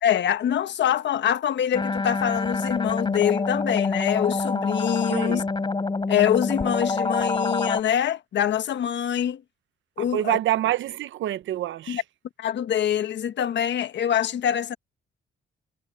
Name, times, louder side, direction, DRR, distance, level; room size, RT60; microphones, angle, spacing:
voice 1, 0.0-5.4 6.1-9.4 10.0-10.4 11.9-12.0 12.4-14.7, left 10 dB, 65° left, 1.4 m, -24 dB
sound 1, 1.7-7.8, left 3 dB, 25° left, 4.8 m, -26 dB
voice 2, 5.1-5.4 10.0-12.0, right 14 dB, 75° right, 0.9 m, -26 dB
cardioid pair, 90°, 20 cm